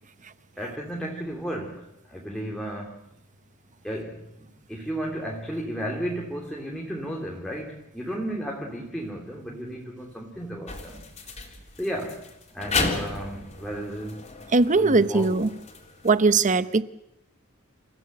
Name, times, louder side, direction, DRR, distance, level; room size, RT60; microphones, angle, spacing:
voice 1, 0.6-3.0 3.8-11.0 11.8-12.3 12.5-14.2 14.7-15.4, equal, 5° left, 3.0 m, -33 dB
sound 1, 10.7-16.1, left 3 dB, 30° left, 3.8 m, -33 dB
voice 2, 14.5-15.5 16.0-16.8, right 3 dB, 35° right, 0.8 m, -20 dB
29.0 x 16.0 x 7.8 m
head